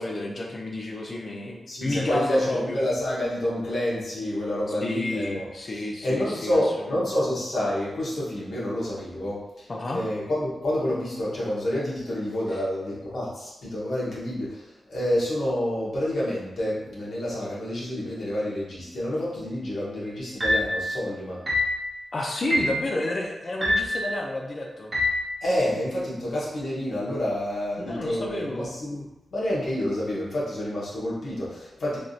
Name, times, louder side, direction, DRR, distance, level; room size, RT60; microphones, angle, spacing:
voice 1, 0.0-2.8 4.8-7.0 9.7-10.0 22.1-24.9 27.8-28.7, left 2 dB, 40° left, 0 dB, 0.5 m, -30 dB
voice 2, 1.7-5.5 6.0-21.4 25.4-29.0 29.3-32.0, left 1 dB, 70° left, -7 dB, 1.2 m, -28 dB
sound 1, 20.4-20.8 21.5-21.8 22.5-22.8 23.6-24.0 24.9-25.2, left 1 dB, 30° right, 0.7 m, -24 dB
3.5 x 2.6 x 2.4 m, 0.98 s
wide cardioid pair, 110°, 0 cm